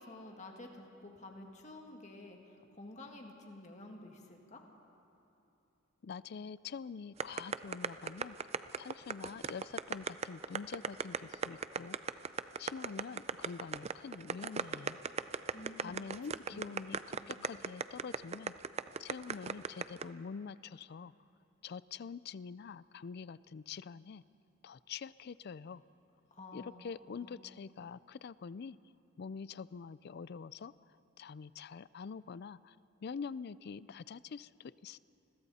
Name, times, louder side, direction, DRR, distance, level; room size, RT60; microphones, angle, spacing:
voice 1, 0.0-4.6 15.5-16.7 17.2-17.5 26.3-26.8 27.2-27.5, left 2 dB, 35° left, 2 dB, 2.0 m, -51 dB
voice 2, 6.0-12.1 12.6-15.0 15.8-18.5 19.0-21.1 21.6-24.2 24.6-25.8 26.5-28.8 29.2-30.7 31.2-32.8 33.0-35.0, left 5 dB, 55° left, 19 dB, 0.4 m, -45 dB
sound 1, 7.2-20.0, right 6 dB, 30° right, 0.4 m, -36 dB
29.5 x 21.5 x 4.2 m, 2.9 s
head